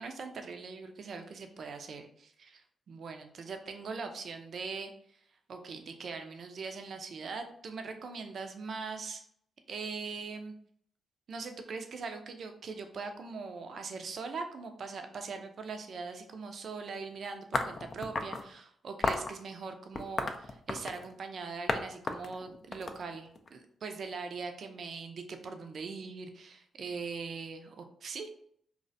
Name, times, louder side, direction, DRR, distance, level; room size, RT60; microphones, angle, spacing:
voice 1, 0.0-5.2 5.5-9.2 9.7-10.5 11.3-28.3, right 4 dB, 60° right, 6 dB, 0.3 m, -41 dB
sound 1, 17.5-18.4 19.0-19.3 19.9-21.1 21.7-21.8 22.1-23.5, left 3 dB, 50° left, 0.3 m, -32 dB
2.4 x 2.1 x 2.6 m, 0.64 s
hypercardioid pair, 45°, 0 cm